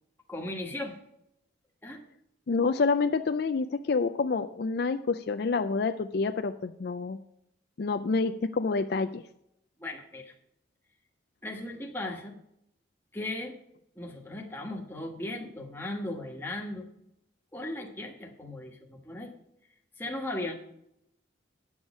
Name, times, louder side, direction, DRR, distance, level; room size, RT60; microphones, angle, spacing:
voice 1, 0.3-1.0 1.8-2.0 9.8-10.3 11.4-12.3 13.1-13.6 13.9-16.9 17.5-19.3 20.0-20.5, left 1 dB, 10° left, 1 dB, 1.4 m, -37 dB
voice 2, 2.5-7.2 7.8-9.2, left 4 dB, 55° left, 8 dB, 0.4 m, -28 dB
9.7 x 7.1 x 6.3 m, 0.79 s
head